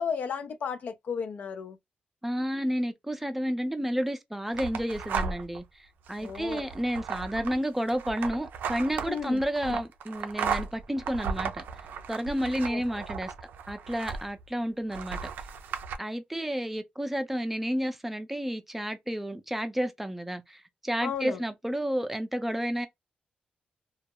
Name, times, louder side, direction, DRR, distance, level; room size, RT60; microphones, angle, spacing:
voice 1, 0.0-1.8 6.2-6.7 9.1-9.8 12.7-12.8 21.0-21.4, left 6 dB, 60° left, 0.4 m, -34 dB
voice 2, 2.2-11.6 12.1-13.3 13.7-15.2 16.0-22.9, equal, 5° right, 0.4 m, -31 dB
sound 1, 4.5-5.6 6.1-14.5 14.9-16.0, right 6 dB, 85° right, 0.4 m, -35 dB
2.2 x 2.0 x 2.9 m
cardioid pair, 120°, 3 cm